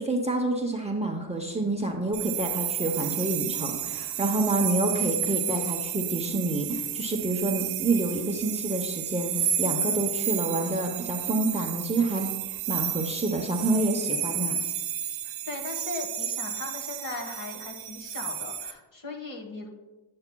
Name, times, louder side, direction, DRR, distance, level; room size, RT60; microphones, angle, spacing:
voice 1, 0.0-14.6, right 2 dB, 15° right, 1 dB, 0.8 m, -28 dB
sound 1, 2.1-18.7, right 9 dB, 90° right, 0.7 m, -31 dB
voice 2, 15.2-19.7, left 3 dB, 40° left, 2 dB, 1.4 m, -38 dB
9.5 x 7.9 x 2.2 m, 1.1 s
cardioid pair, 90°, 48 cm